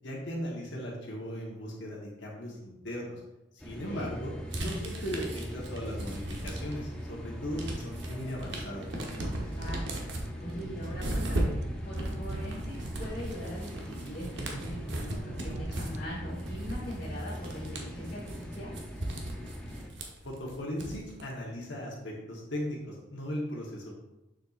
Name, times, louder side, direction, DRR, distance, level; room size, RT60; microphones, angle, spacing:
voice 1, 0.0-3.2 3.5-8.9 20.2-24.0, equal, 65° left, -3 dB, 1.3 m, -38 dB
sound 1, 3.6-19.9, equal, 5° left, 0.7 m, -41 dB
voice 2, 3.8-4.2 9.4-11.6 11.8-18.7, equal, 45° left, -8 dB, 1.6 m, -41 dB
sound 2, 4.5-6.9 7.3-21.2, right 1 dB, 65° right, 1.1 m, -37 dB
sound 3, 10.1-16.0, right 3 dB, 35° right, 0.4 m, -48 dB
6.8 x 6.5 x 2.5 m, 0.94 s
head